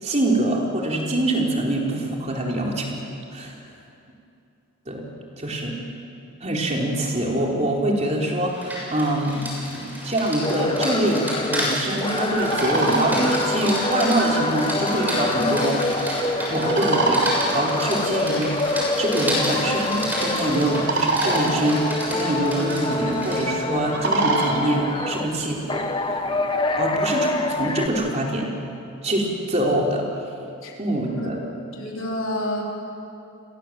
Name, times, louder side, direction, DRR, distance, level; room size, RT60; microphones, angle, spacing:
voice 1, 0.0-2.9 3.3-3.5 4.9-5.1 5.4-5.7 6.4-9.5 9.7-15.8 16.5-18.7 19.0-25.9 26.8-28.5 29.0-30.0 30.8-31.4, right 1 dB, 30° right, -1 dB, 4.0 m, -24 dB
Rain, 8.4-23.5, equal, 10° right, 6.7 m, -31 dB
sound 1, 10.4-21.0 21.3-25.3 25.7-27.9, left 2 dB, 20° left, 1.4 m, -26 dB
sound 2, 12.3-26.9, right 2 dB, 55° right, 3.9 m, -29 dB
voice 2, 31.8-32.6, left 1 dB, 65° left, -1 dB, 4.5 m, -28 dB
29.5 x 22.0 x 7.7 m, 2.7 s
head